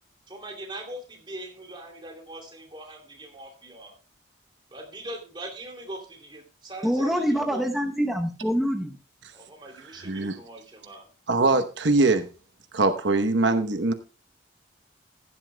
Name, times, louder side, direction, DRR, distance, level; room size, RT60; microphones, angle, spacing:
voice 1, 0.3-4.0 4.7-7.6 9.3-11.1, right 1 dB, 25° right, 2.8 m, -41 dB
voice 2, 6.8-9.0, equal, ahead, 0.8 m, -25 dB
voice 3, 10.0-10.3 11.3-12.3 12.7-13.9, right 3 dB, 85° right, 0.9 m, -22 dB
15.5 x 11.5 x 2.2 m
head